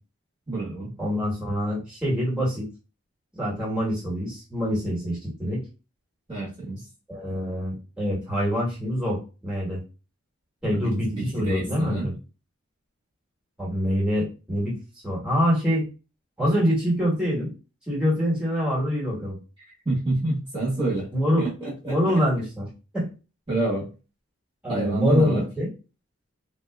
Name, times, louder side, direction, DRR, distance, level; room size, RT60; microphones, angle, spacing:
voice 1, 0.5-0.9 6.3-6.8 10.7-12.1 19.8-21.1 21.4-22.2 23.5-23.9 24.7-25.4, right 2 dB, 25° right, -7 dB, 1.2 m, -28 dB
voice 2, 1.0-2.7 3.3-5.6 7.1-9.8 10.6-12.1 13.6-14.7 15.0-15.9 16.4-17.5 17.9-19.4 21.1-21.4 21.8-22.7 22.9-23.1 24.6-25.7, equal, 5° right, -6 dB, 1.4 m, -25 dB
3.7 x 2.7 x 2.3 m, 0.32 s
head